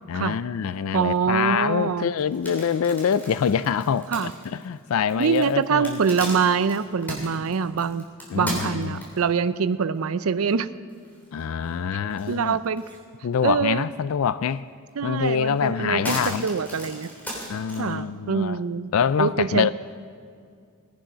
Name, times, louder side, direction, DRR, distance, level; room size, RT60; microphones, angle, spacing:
voice 1, 0.1-6.0 8.3-9.0 11.3-12.6 13.2-14.6 15.0-16.4 17.5-18.6 18.9-19.7, left 7 dB, 80° left, 15 dB, 0.4 m, -25 dB
voice 2, 0.9-2.1 4.1-4.3 5.2-8.0 8.3-10.7 12.3-12.8 13.4-13.9 15.0-17.1 17.8-18.9 19.2-19.7, right 6 dB, 85° right, 14 dB, 0.5 m, -24 dB
sound 1, 2.2-9.4 9.9-10.0 10.5-10.6 10.9-11.7 12.1-13.0 13.4-13.5 14.9-15.0 15.4-17.9, equal, 10° left, 3.3 m, -36 dB
19.0 x 10.0 x 5.6 m, 2.2 s
head